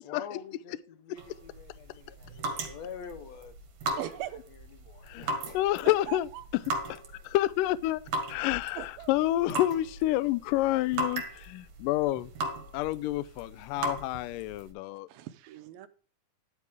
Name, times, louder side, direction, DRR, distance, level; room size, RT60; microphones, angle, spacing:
voice 1, 0.0-3.5 3.9-4.2 4.5-5.6, left 7 dB, 65° left, 1.9 m, -46 dB
sound 1, 1.2-14.7, right 2 dB, 55° right, 2.7 m, -38 dB
voice 2, 4.0-4.4 5.8-6.4 8.8-9.1 15.1-15.9, right 13 dB, 80° right, 2.6 m, -40 dB
voice 3, 5.0-6.6 6.9-8.0 8.3-12.3 12.7-15.1, left 15 dB, 80° left, 2.0 m, -29 dB
11.5 x 8.4 x 3.5 m
omnidirectional pair, 4.2 m